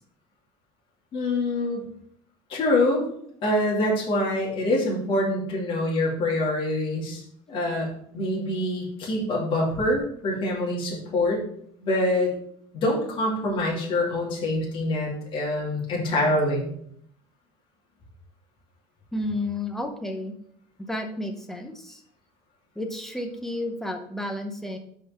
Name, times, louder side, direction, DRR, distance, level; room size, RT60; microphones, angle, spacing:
voice 1, 1.1-1.8 2.5-3.0 3.4-7.2 7.5-7.9 8.1-11.4 11.8-12.3 12.7-16.7, left 1 dB, 40° left, -4 dB, 2.6 m, -25 dB
voice 2, 19.1-20.3 20.9-22.0 22.8-24.8, left 1 dB, 5° left, 4 dB, 0.8 m, -31 dB
5.4 x 5.4 x 5.8 m, 0.67 s
cardioid pair, 155°, 13 cm